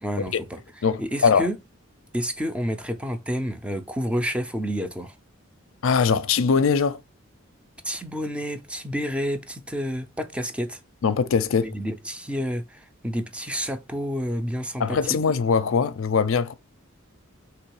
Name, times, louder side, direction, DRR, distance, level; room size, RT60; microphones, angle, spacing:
voice 1, 0.0-0.6 1.0-1.5 2.1-5.2 7.8-10.8 11.6-15.0, equal, 5° right, 0.5 m, -29 dB
voice 2, 0.8-1.5 5.8-7.0 11.0-11.7 14.8-16.5, left 5 dB, 70° left, 0.5 m, -21 dB
3.8 x 3.0 x 4.7 m
head